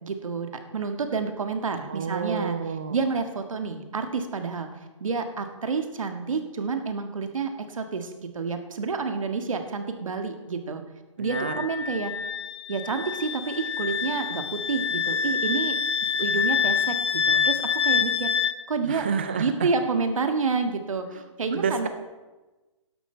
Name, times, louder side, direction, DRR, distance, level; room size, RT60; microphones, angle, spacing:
voice 1, 0.0-2.6 2.9-4.7 5.0-10.8 11.2-12.1 12.7-15.8 16.2-18.3 18.7-19.1 19.3-21.9, right 4 dB, 80° right, 6 dB, 1.7 m, -29 dB
voice 2, 1.9-3.0 11.2-11.5 18.8-19.7 21.1-21.2 21.5-21.9, right 6 dB, 20° right, 8 dB, 0.3 m, -29 dB
Wind instrument woodwind instrument, 11.3-18.6, left 7 dB, 55° left, 0.6 m, -26 dB
12.5 x 11.0 x 4.5 m, 1.2 s
hypercardioid pair, 175°, 17 cm